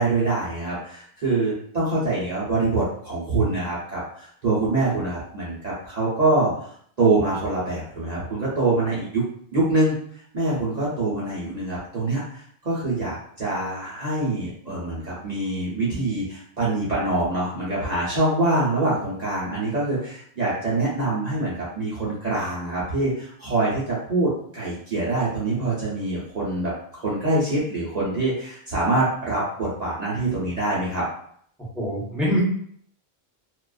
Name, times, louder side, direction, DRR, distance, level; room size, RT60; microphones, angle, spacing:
voice 1, 0.0-6.7 7.0-9.2 9.5-9.9 10.3-26.7 27.0-31.0, right 2 dB, 45° right, -7 dB, 0.7 m, -25 dB
voice 2, 31.7-32.4, equal, ahead, -6 dB, 0.7 m, -24 dB
2.4 x 2.2 x 2.3 m, 0.62 s
omnidirectional pair, 1.0 m